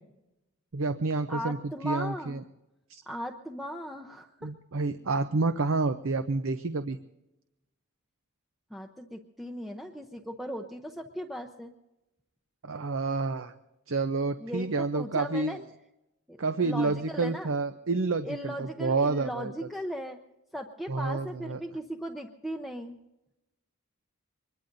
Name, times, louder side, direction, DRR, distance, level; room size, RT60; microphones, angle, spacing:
voice 1, 0.7-2.4 2.9-3.0 4.4-7.0 12.6-13.5 13.9-15.6 16.4-19.7 20.9-21.6, right 3 dB, 65° right, 10 dB, 0.7 m, -29 dB
voice 2, 1.3-2.4 3.1-4.5 8.7-11.7 14.4-15.6 16.3-17.5 18.2-20.2 20.5-23.0, equal, ahead, 2 dB, 0.7 m, -38 dB
24.5 x 21.5 x 2.6 m, 0.95 s
head